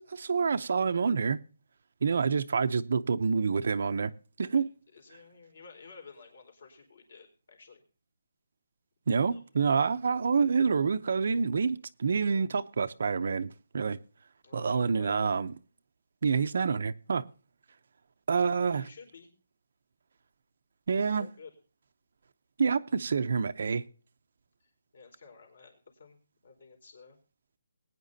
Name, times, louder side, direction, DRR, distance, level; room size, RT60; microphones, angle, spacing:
voice 1, 0.0-1.4 2.0-4.1 4.4-4.7 9.1-14.0 14.5-15.5 16.2-17.2 18.3-18.9 20.9-21.3 22.6-23.8, right 5 dB, 45° right, 0.6 m, -27 dB
voice 2, 4.5-7.8 9.3-9.4 9.8-9.9 14.4-15.2 18.3-19.3 21.0-21.5 24.6-26.2 26.4-27.2, left 5 dB, 50° left, 4.4 m, -52 dB
21.5 x 9.6 x 2.7 m
hypercardioid pair, 180°, 0 cm